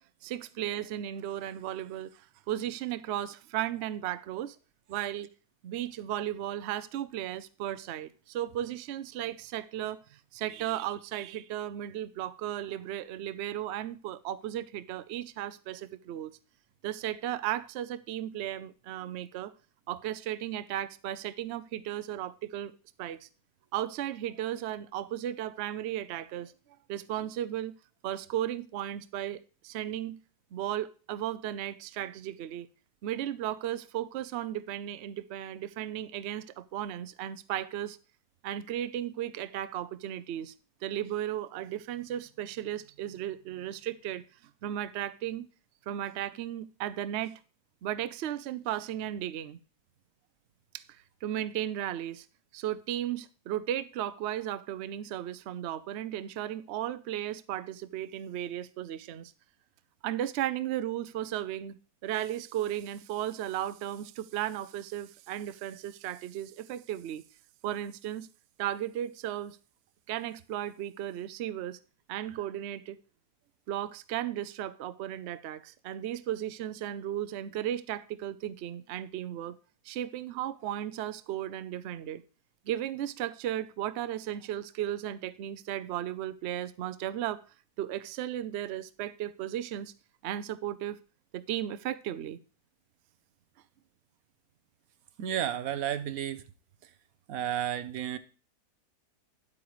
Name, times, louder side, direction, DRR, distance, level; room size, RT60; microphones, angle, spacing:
voice 1, 0.2-4.6 4.9-5.3 5.6-10.0 10.3-16.3 16.8-19.5 19.9-22.7 23.0-23.3 23.7-26.5 26.9-27.7 28.0-30.2 30.5-32.7 33.0-38.0 38.4-40.5 40.8-44.2 44.6-45.5 45.9-47.4 47.8-49.6 50.7-50.8 51.2-52.3 52.5-59.3 60.0-67.2 67.6-68.3 68.6-69.6 70.1-71.8 72.1-73.0 73.7-79.6 79.8-82.2 82.7-87.4 87.8-89.9 90.2-91.0 91.3-92.4, right 12 dB, 85° right, 0.5 m, -35 dB
voice 2, 95.2-96.4 97.3-98.2, right 10 dB, 65° right, 1.1 m, -32 dB
10.0 x 8.6 x 3.1 m
omnidirectional pair, 1.8 m